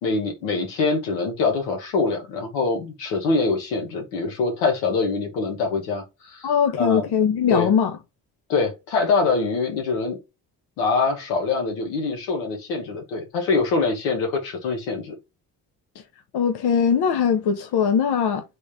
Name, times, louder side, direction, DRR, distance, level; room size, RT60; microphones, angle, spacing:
voice 1, 0.0-6.5 6.8-7.1 7.5-7.7 8.5-10.2 10.8-15.1, left 4 dB, 90° left, 1.7 m, -24 dB
voice 2, 6.4-7.9 16.3-18.4, left 7 dB, 65° left, 0.9 m, -20 dB
3.9 x 3.4 x 3.6 m
supercardioid pair, 55°, 43 cm